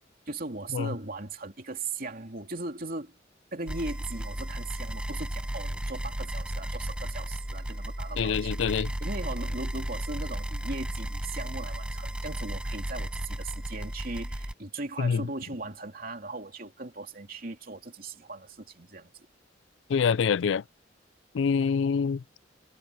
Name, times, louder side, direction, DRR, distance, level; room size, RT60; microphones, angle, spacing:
voice 1, 0.3-3.1 3.5-19.3, right 3 dB, 50° right, 3.0 m, -38 dB
sound 1, 3.7-14.5, right 1 dB, 5° right, 0.4 m, -34 dB
voice 2, 8.2-8.9 15.0-15.3 19.9-20.6 21.3-22.2, left 6 dB, 80° left, 0.4 m, -25 dB
head